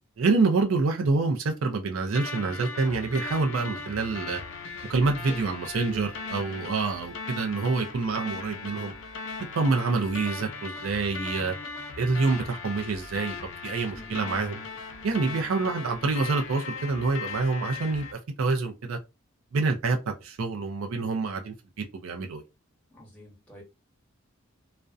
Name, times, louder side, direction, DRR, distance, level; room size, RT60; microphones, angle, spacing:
voice 1, 0.2-4.4 4.9-8.9 9.5-11.5 12.0-13.3 13.6-14.6 15.0-19.0 19.5-22.4, right 3 dB, 75° right, 0.4 m, -27 dB
sound 1, 2.2-18.1, left 4 dB, 65° left, 0.5 m, -38 dB
voice 2, 4.8-5.9 9.7-9.8 13.9-14.1 15.1-15.4 22.9-23.6, left 1 dB, 5° left, 0.9 m, -47 dB
2.4 x 2.1 x 2.4 m
head